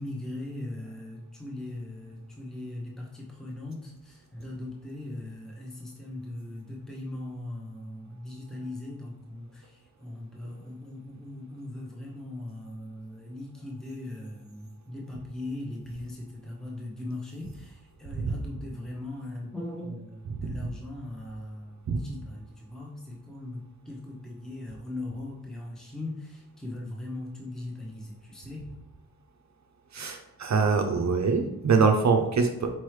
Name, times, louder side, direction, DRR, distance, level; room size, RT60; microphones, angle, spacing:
voice 1, 0.0-28.6, left 1 dB, ahead, -2 dB, 0.9 m, -39 dB
voice 2, 29.9-32.7, right 4 dB, 50° right, 5 dB, 0.5 m, -24 dB
4.4 x 3.0 x 3.2 m, 0.90 s
cardioid pair, 60°, 36 cm